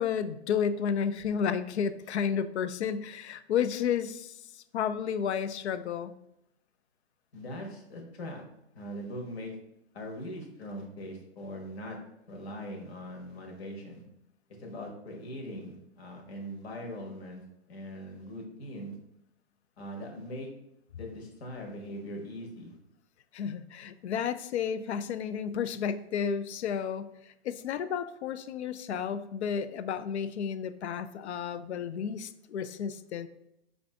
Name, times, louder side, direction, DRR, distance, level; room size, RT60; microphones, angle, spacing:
voice 1, 0.0-6.2 23.3-27.1 27.4-33.3, left 7 dB, 85° left, 12 dB, 0.5 m, -32 dB
voice 2, 7.3-8.4 8.7-9.5 9.9-12.0 12.3-14.0 14.6-18.9 19.8-20.5 20.9-22.8, equal, 70° left, 1 dB, 1.3 m, -41 dB
4.9 x 2.6 x 3.3 m, 0.81 s
hypercardioid pair, 135°, 33 cm